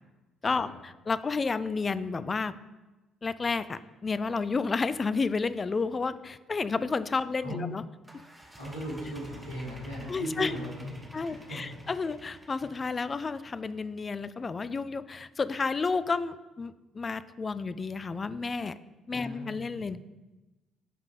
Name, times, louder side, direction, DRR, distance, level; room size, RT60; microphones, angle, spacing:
voice 1, 0.4-2.6 3.2-7.8 10.1-10.5 11.1-18.8 19.1-20.0, left 4 dB, 30° left, 15 dB, 0.4 m, -31 dB
sound 1, 8.0-13.6, right 1 dB, 10° right, 1.2 m, -51 dB
voice 2, 8.6-11.8 19.1-19.8, equal, 80° left, -9 dB, 2.9 m, -38 dB
9.5 x 5.2 x 4.1 m, 1.1 s
figure-of-eight pair, 45°, 0 cm